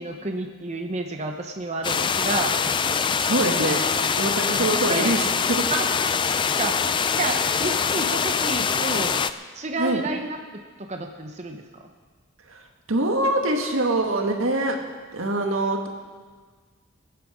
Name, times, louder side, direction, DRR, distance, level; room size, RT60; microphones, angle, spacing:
voice 1, 0.0-2.5 3.9-4.1 4.4-5.1 5.7-5.9 6.6-6.8 7.2-9.2 9.5-10.4 10.8-11.6, right 2 dB, 35° right, 3 dB, 0.8 m, -30 dB
sound 1, 1.8-9.3, left 6 dB, 25° left, 0.3 m, -24 dB
voice 2, 3.2-3.8 4.2-5.7 9.8-10.0 12.5-12.6 12.9-14.8 15.1-15.9, right 2 dB, 80° right, 3 dB, 1.8 m, -24 dB
21.0 x 9.1 x 5.0 m, 1.5 s
head